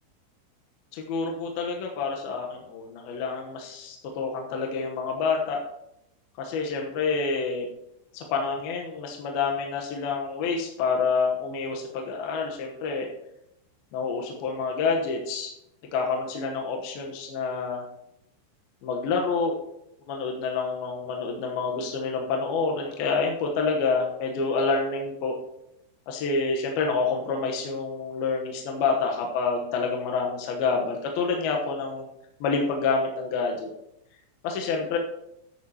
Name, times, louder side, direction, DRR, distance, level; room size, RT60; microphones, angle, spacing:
voice 1, 0.9-5.6 6.4-7.7 8.1-13.1 13.9-15.5 15.9-17.8 18.8-19.5 20.1-25.4 26.1-32.0 32.4-33.7 34.4-35.0, left 4 dB, 70° left, 1 dB, 2.5 m, -28 dB
13.5 x 10.5 x 2.9 m, 0.84 s
omnidirectional pair, 5.6 m